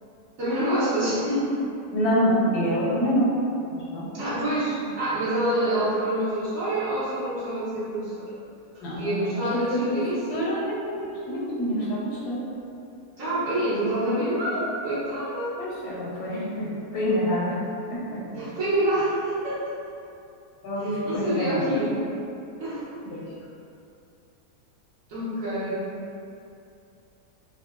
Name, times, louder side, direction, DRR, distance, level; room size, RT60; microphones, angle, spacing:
voice 1, 0.4-1.6 4.1-8.3 8.9-10.5 13.2-15.6 18.3-19.7 20.8-22.0 22.6-22.9 25.1-25.9, right 1 dB, 60° right, -12 dB, 1.3 m, -27 dB
voice 2, 1.9-3.4 3.7-4.1 8.8-10.0 10.3-12.4 15.6-17.6 17.9-18.2 20.6-21.7 23.1-23.3 25.5-25.7, equal, 80° left, -7 dB, 1.2 m, -27 dB
3.6 x 2.0 x 2.4 m, 2.6 s
omnidirectional pair, 1.7 m